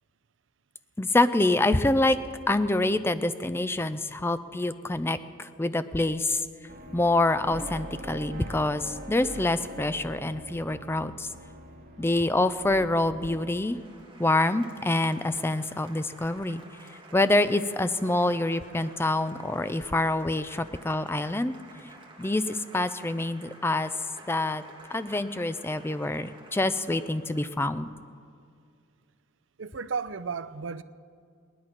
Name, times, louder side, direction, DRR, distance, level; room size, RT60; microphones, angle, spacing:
voice 1, 1.0-2.2 2.5-6.5 6.9-11.3 12.0-13.8 14.2-16.6 17.1-21.5 22.2-23.9 24.3-24.6 24.9-27.9, left 2 dB, 10° left, 0.4 m, -26 dB
sound 1, 6.7-13.6, right 1 dB, 50° right, 1.9 m, -43 dB
Applause, 13.0-27.8, right 2 dB, 25° right, 1.7 m, -51 dB
voice 2, 29.6-30.8, right 5 dB, 65° right, 0.5 m, -33 dB
18.5 x 11.5 x 5.9 m
head